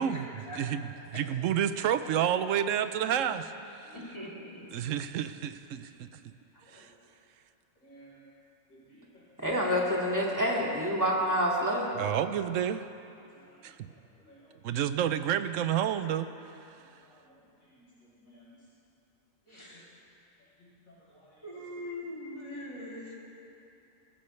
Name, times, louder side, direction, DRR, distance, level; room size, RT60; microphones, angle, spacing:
voice 1, 0.5-3.9 4.7-6.1 6.7-6.9 12.0-12.9 13.6-13.9 14.6-16.3, right 9 dB, 70° right, 11 dB, 0.9 m, -30 dB
voice 2, 2.9-3.2 3.9-4.6 19.5-19.9 21.4-23.1, left 1 dB, 20° left, -6 dB, 2.8 m, -42 dB
voice 3, 7.8-8.2 8.7-9.2 13.5-13.9 14.3-14.5 16.9-17.3 17.7-18.5 19.5-19.8 20.6-21.4, right 1 dB, 75° left, -9 dB, 4.8 m, -58 dB
voice 4, 9.4-11.9, equal, 15° right, -4 dB, 2.0 m, -27 dB
21.5 x 14.5 x 3.2 m, 2.7 s
omnidirectional pair, 1.4 m